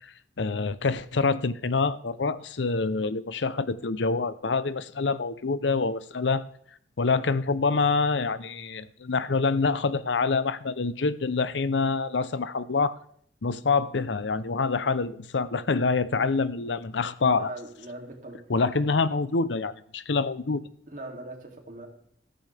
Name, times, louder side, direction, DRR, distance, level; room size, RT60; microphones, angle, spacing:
voice 1, 0.0-6.4 7.0-13.0 13.4-17.5 18.5-20.6, left 4 dB, 90° left, 15 dB, 0.7 m, -26 dB
voice 2, 17.2-18.4 20.9-21.9, right 2 dB, 45° right, 1 dB, 2.8 m, -40 dB
14.0 x 14.0 x 3.4 m, 0.64 s
head